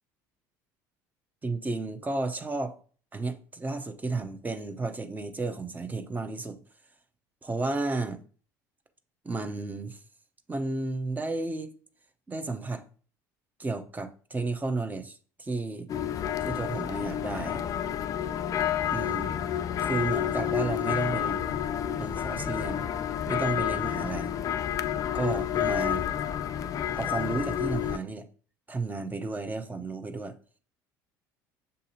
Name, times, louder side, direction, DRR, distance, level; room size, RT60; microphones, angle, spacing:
voice 1, 1.4-2.8 3.1-6.6 7.4-8.2 9.2-10.0 10.5-11.7 12.3-12.8 13.6-15.9 16.4-17.6 18.9-19.3 19.8-21.6 22.0-22.9 23.3-24.3 25.1-26.0 26.9-28.3 28.7-30.4, right 3 dB, 20° right, 0.7 m, -32 dB
sound 1, 15.9-28.0, left 10 dB, 40° left, 0.3 m, -30 dB
6.6 x 2.7 x 2.7 m
supercardioid pair, 85°, 9 cm